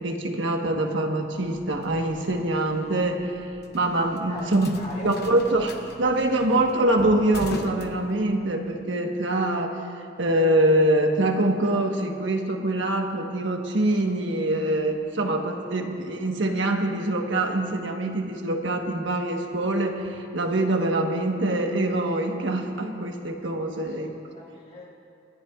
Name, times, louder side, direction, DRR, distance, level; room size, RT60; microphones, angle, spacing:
voice 1, 0.0-3.3 3.7-4.7 5.0-9.8 10.2-24.1, right 1 dB, 80° right, 2 dB, 1.3 m, -24 dB
sound 1, 1.3-8.7, left 2 dB, 60° left, 0.9 m, -41 dB
voice 2, 4.3-5.3 6.1-6.2 23.7-24.9, left 2 dB, 40° left, -5 dB, 3.6 m, -41 dB
26.5 x 13.5 x 2.5 m, 2.6 s
head